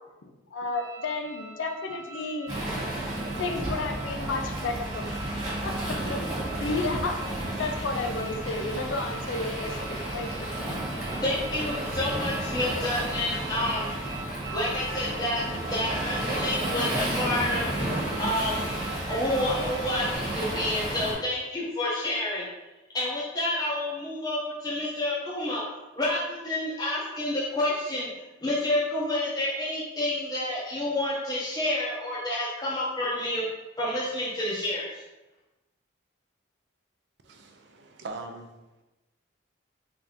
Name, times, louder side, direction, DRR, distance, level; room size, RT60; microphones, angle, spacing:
voice 1, 0.2-2.5 3.1-5.1 5.6-6.2 6.6-7.2 7.6-10.6, left 3 dB, 70° left, 5 dB, 0.4 m, -32 dB
sound 1, 0.7-20.2, right 2 dB, 80° right, 1.0 m, -44 dB
Waves surf, 2.5-21.1, right 1 dB, 35° right, 1.4 m, -32 dB
sound 2, 4.3-8.6, equal, 20° right, 0.6 m, -44 dB
voice 2, 10.6-13.9 14.5-17.7 18.2-18.6 19.1-22.4 22.9-25.6 26.0-28.1 28.4-33.4 33.8-35.0, left 1 dB, 20° left, -6 dB, 0.6 m, -29 dB
voice 3, 37.2-38.5, right 3 dB, 55° right, 4 dB, 0.5 m, -41 dB
3.7 x 2.7 x 3.4 m, 1.0 s
head